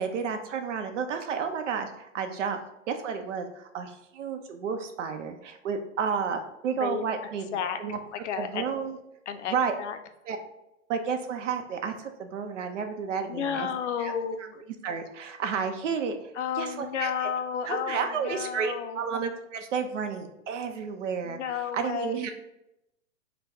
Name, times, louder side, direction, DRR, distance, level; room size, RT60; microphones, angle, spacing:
voice 1, 0.0-2.6 2.9-8.0 8.4-9.0 9.5-9.7 10.3-10.4 10.9-13.7 14.0-14.1 14.8-16.3 16.6-17.3 17.6-21.4 21.7-22.3, right 6 dB, 70° right, 6 dB, 0.6 m, -31 dB
voice 2, 6.7-7.1 7.5-7.8 8.1-8.7 9.3-10.0 13.3-14.6 16.4-19.0 21.2-22.3, left 7 dB, 65° left, 9 dB, 0.5 m, -32 dB
4.2 x 2.2 x 3.4 m, 0.88 s
hypercardioid pair, 125°, 39 cm